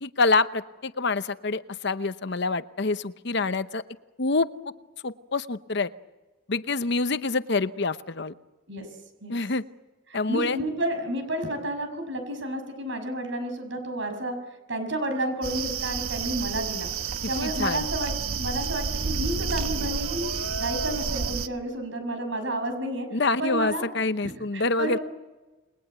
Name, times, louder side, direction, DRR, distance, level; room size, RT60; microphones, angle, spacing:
voice 1, 0.0-3.8 4.2-4.5 5.0-5.9 6.5-8.3 9.3-9.6 10.1-10.6 17.4-17.9 23.1-25.0, left 3 dB, 55° left, 12 dB, 0.8 m, -26 dB
voice 2, 10.1-14.4 14.7-16.9 17.3-20.3 20.6-23.1 23.4-23.9 24.5-25.0, right 1 dB, 60° right, 7 dB, 6.4 m, -31 dB
sound 1, 15.4-21.5, right 5 dB, 90° right, 1.1 m, -30 dB
29.5 x 21.0 x 8.2 m, 1.2 s
head